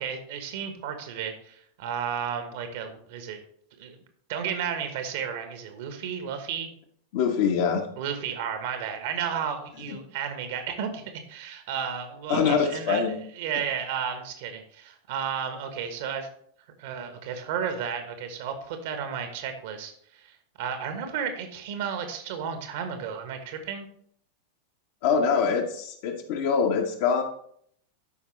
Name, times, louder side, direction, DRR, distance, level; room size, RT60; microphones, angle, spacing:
voice 1, 0.0-3.4 3.8-4.0 4.3-6.7 8.0-11.0 11.3-13.1 13.3-16.3 16.8-23.9, right 7 dB, 50° right, 7 dB, 1.3 m, -33 dB
voice 2, 7.1-7.9 12.3-13.1 25.0-27.2, left 6 dB, 50° left, 4 dB, 1.2 m, -24 dB
12.5 x 5.3 x 3.3 m, 0.66 s
figure-of-eight pair, 90°, 0 cm